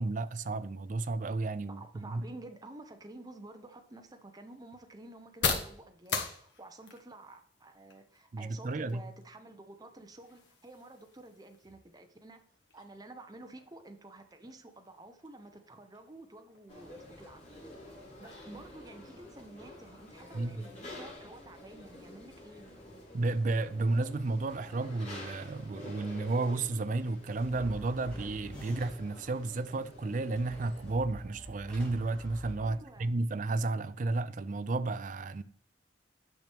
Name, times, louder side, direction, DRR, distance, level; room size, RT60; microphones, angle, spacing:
voice 1, 0.0-2.3 8.3-9.0 20.3-20.6 23.1-35.4, right 2 dB, 45° right, 0.4 m, -32 dB
voice 2, 1.7-12.4 12.7-17.5 18.2-22.8 32.6-33.1, right 2 dB, 20° right, 0.7 m, -51 dB
sound 1, 3.3-20.9, left 5 dB, 70° left, 1.4 m, -43 dB
sound 2, 16.7-31.0, left 1 dB, 40° left, 3.4 m, -50 dB
sound 3, 27.3-29.2 30.3-33.2, equal, 5° left, 3.2 m, -47 dB
9.4 x 5.9 x 3.5 m
head